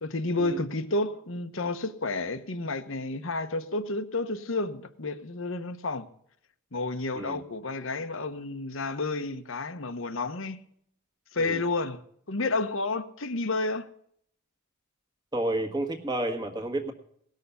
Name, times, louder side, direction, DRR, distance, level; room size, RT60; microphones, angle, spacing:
voice 1, 0.0-6.0 6.7-10.6 11.3-12.0 12.3-13.9, left 2 dB, 65° left, 1.0 m, -31 dB
voice 2, 15.3-16.9, right 1 dB, 20° right, 1.6 m, -30 dB
18.0 x 6.6 x 6.8 m
head